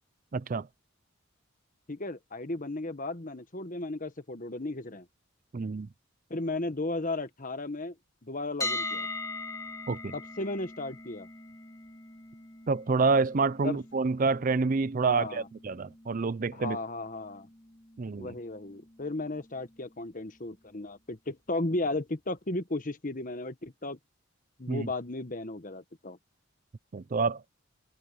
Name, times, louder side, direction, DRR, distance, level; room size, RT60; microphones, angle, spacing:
voice 1, 0.3-0.7 5.5-5.9 9.9-10.1 12.7-16.8 18.0-18.4 24.7-24.9 26.9-27.4, right 4 dB, 40° right, 0.4 m, -28 dB
voice 2, 1.9-5.1 6.3-7.9 8.2-9.1 10.1-11.3 13.6-13.8 15.0-15.5 16.5-17.5 18.2-24.0 24.6-26.2, left 2 dB, 40° left, 1.3 m, -35 dB
sound 1, 8.6-20.5, left 2 dB, 15° left, 1.0 m, -42 dB
head